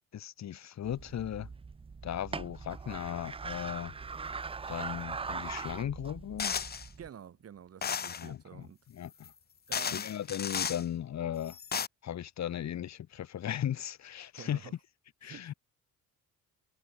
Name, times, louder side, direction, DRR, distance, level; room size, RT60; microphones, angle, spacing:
voice 1, 0.1-1.5 2.0-3.9 4.7-6.5 8.2-8.7 8.9-9.3 9.9-11.6 12.0-14.7 15.2-15.5, left 10 dB, 50° left, 3.5 m, -37 dB
sound 1, 0.8-7.1, right 4 dB, 15° right, 0.7 m, -41 dB
sound 2, 6.4-6.9 7.8-8.3 9.2-9.3 9.7-10.8 11.5-11.9, left 7 dB, 30° left, 1.3 m, -34 dB
voice 2, 7.0-8.8 9.7-10.0 14.3-14.7 15.2-15.5, right 9 dB, 45° right, 4.5 m, -49 dB
cardioid pair, 145°, 34 cm